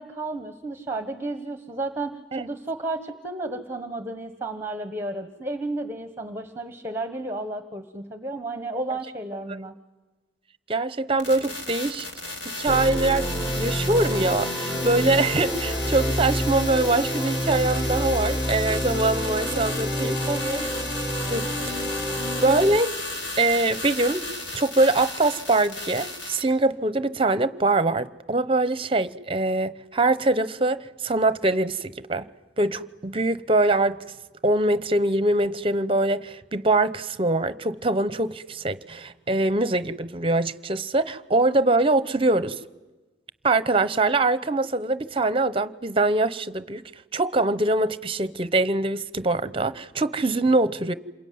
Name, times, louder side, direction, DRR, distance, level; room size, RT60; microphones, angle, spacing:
voice 1, 0.0-9.7 20.3-20.7, right 2 dB, 15° right, 1.3 m, -32 dB
voice 2, 10.7-12.1 12.6-13.3 13.6-20.2 21.3-21.8 22.4-22.9 23.4-24.2 24.5-32.3 32.6-34.0 34.4-42.6 43.4-46.8 47.1-50.9, right 2 dB, 30° right, 0.9 m, -23 dB
sound 1, 11.2-26.4, left 2 dB, 80° left, 4.7 m, -34 dB
sound 2, 12.7-22.8, equal, 5° left, 1.3 m, -28 dB
28.0 x 22.5 x 9.5 m
head